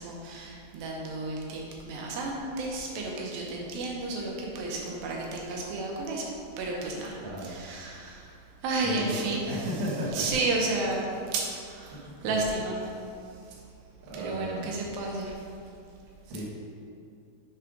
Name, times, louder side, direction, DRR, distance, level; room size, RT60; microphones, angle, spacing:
voice 1, 0.0-9.7 10.1-13.6 14.1-15.5, right 2 dB, 85° right, -2 dB, 2.5 m, -32 dB
voice 2, 7.2-7.5 8.8-9.2 9.5-10.2 11.9-12.4 14.0-14.7 16.2-16.4, equal, 60° right, -6 dB, 2.2 m, -34 dB
7.1 x 3.3 x 5.0 m, 2.5 s
omnidirectional pair, 4.1 m